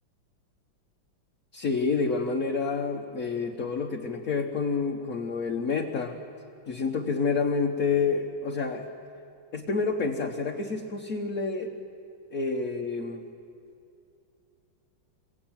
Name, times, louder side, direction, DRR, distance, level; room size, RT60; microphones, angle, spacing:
voice 1, 1.5-6.2 6.7-8.9 9.5-11.7 12.3-13.2, left 4 dB, 45° left, 1 dB, 1.6 m, -28 dB
26.0 x 22.5 x 9.0 m, 2.6 s
omnidirectional pair, 2.2 m